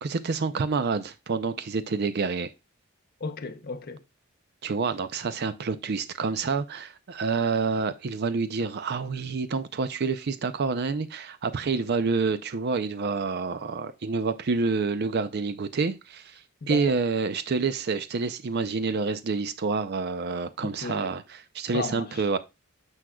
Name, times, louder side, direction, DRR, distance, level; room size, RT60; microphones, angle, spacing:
voice 1, 0.0-2.5 4.6-22.4, right 4 dB, 55° right, 0.5 m, -28 dB
voice 2, 3.2-4.0 16.6-17.0 20.6-21.2 21.7-22.3, left 4 dB, 50° left, 0.7 m, -35 dB
9.8 x 6.2 x 2.2 m
head